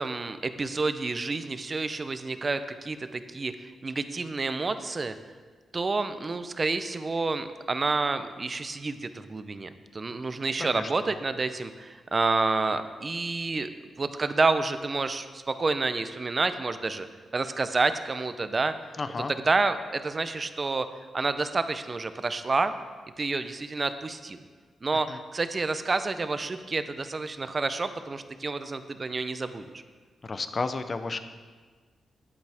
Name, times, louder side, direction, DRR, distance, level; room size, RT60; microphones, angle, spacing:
voice 1, 0.0-5.2 5.7-13.7 14.0-17.1 17.3-18.7 19.3-20.9 21.1-22.7 23.2-24.4 24.8-29.8, right 3 dB, 25° right, 10 dB, 0.6 m, -29 dB
voice 2, 10.6-11.2 19.0-19.3 25.1-25.2 30.2-31.2, left 3 dB, 30° left, 10 dB, 0.6 m, -32 dB
13.5 x 11.0 x 3.5 m, 1.5 s
wide cardioid pair, 155°, 0 cm